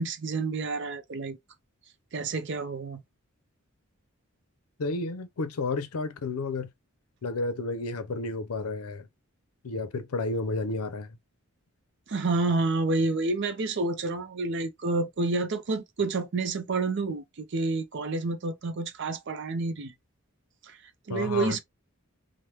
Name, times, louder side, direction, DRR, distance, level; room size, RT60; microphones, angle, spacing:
voice 1, 0.0-1.4 2.1-3.0 12.1-19.9 21.1-21.6, right 3 dB, 50° right, 0.5 m, -29 dB
voice 2, 4.8-6.7 7.2-9.1 9.6-11.1 21.1-21.6, left 3 dB, 80° left, 0.5 m, -31 dB
3.2 x 2.1 x 2.8 m
head